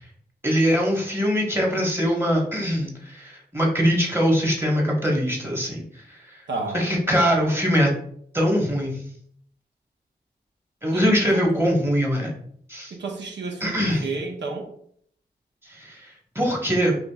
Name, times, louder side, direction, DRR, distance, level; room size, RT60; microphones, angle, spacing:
voice 1, 0.4-5.8 6.1-6.4 6.7-7.9 8.3-9.0 10.8-12.3 12.7-12.9 13.6-14.1 15.7-16.1 16.3-17.0, equal, 15° right, -1 dB, 1.3 m, -22 dB
voice 2, 6.5-6.9 10.9-11.0 11.3-11.4 12.9-14.7, right 3 dB, 85° right, 2 dB, 0.8 m, -31 dB
5.0 x 3.1 x 2.3 m, 0.65 s
cardioid pair, 55°, 18 cm